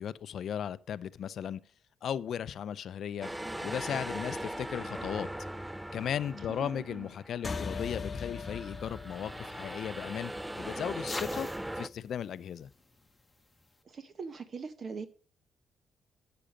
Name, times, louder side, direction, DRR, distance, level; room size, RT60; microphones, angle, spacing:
voice 1, 0.0-1.6 2.0-3.3 3.6-5.3 5.9-10.3 10.6-11.5 11.8-12.7, left 9 dB, 65° left, 0.5 m, -36 dB
sound 1, 3.2-7.8 8.2-11.9, right 1 dB, 5° right, 0.3 m, -40 dB
voice 2, 6.5-7.1 13.8-15.1, right 5 dB, 45° right, 0.9 m, -42 dB
sound 2, 7.4-12.3, left 4 dB, 30° left, 1.0 m, -41 dB
sound 3, 8.7-13.8, left 2 dB, 10° left, 1.1 m, -49 dB
10.0 x 6.8 x 5.1 m
cardioid pair, 90°, 0 cm